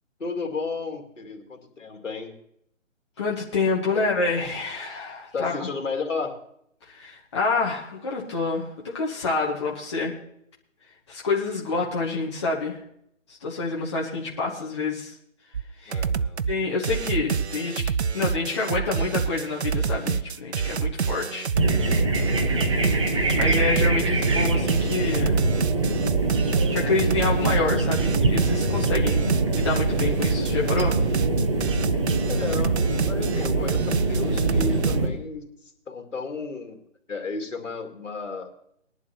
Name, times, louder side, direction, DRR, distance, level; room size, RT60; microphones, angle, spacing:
voice 1, 0.2-2.3 3.9-4.1 5.3-6.4 15.9-16.4 32.3-35.5 35.9-36.8 37.1-38.5, left 4 dB, 65° left, 3 dB, 2.5 m, -33 dB
voice 2, 3.2-5.5 6.9-10.1 11.1-12.8 13.3-15.1 15.8-16.0 16.5-21.5 23.2-25.4 26.7-29.2 29.5-31.0, left 3 dB, 20° left, -3 dB, 1.2 m, -27 dB
sound 1, 15.5-15.6 15.9-16.5 16.8-35.0, right 6 dB, 55° right, 0.5 m, -27 dB
sound 2, 21.6-35.1, right 2 dB, 25° right, 1.0 m, -24 dB
20.0 x 11.0 x 2.9 m, 0.72 s
figure-of-eight pair, 160°, 39 cm